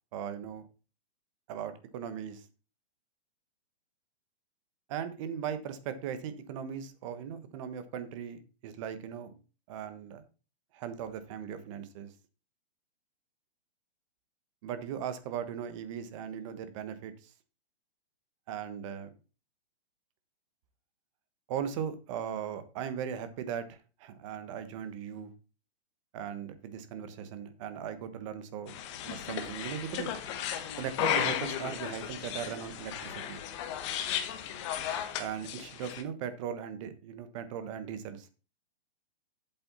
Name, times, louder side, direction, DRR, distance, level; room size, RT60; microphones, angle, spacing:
voice 1, 0.1-0.7 1.5-2.5 4.9-9.3 9.7-10.2 10.7-12.1 14.6-17.3 18.5-19.1 21.5-25.3 26.1-28.7 29.0-30.2 30.8-33.4 35.2-38.3, right 8 dB, 30° right, 11 dB, 1.2 m, -38 dB
sound 1, 28.7-36.0, left 9 dB, 30° left, 1.1 m, -35 dB
8.0 x 7.6 x 4.1 m, 0.33 s
hypercardioid pair, 165°, 31 cm